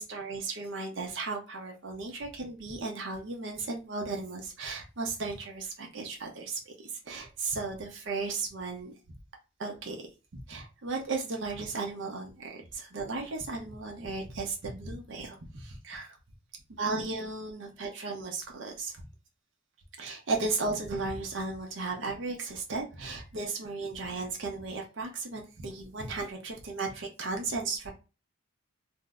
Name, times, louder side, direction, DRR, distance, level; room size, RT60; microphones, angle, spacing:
voice 1, 0.0-8.9 9.6-16.2 16.8-19.1 20.0-27.9, right 3 dB, 60° right, 1 dB, 0.6 m, -35 dB
2.6 x 2.0 x 3.4 m, 0.30 s
head